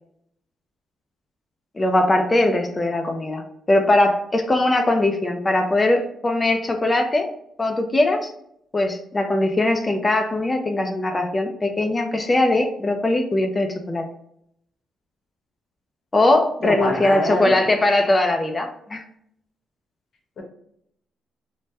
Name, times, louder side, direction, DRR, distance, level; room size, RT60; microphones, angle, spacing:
voice 1, 1.8-7.3 7.6-8.3 8.7-14.1 16.1-19.0, left 2 dB, 25° left, 4 dB, 0.4 m, -20 dB
voice 2, 16.6-17.6 20.4-20.5, left 1 dB, 65° left, 1 dB, 0.9 m, -25 dB
3.2 x 2.1 x 2.7 m, 0.71 s
cardioid pair, 85°, 0 cm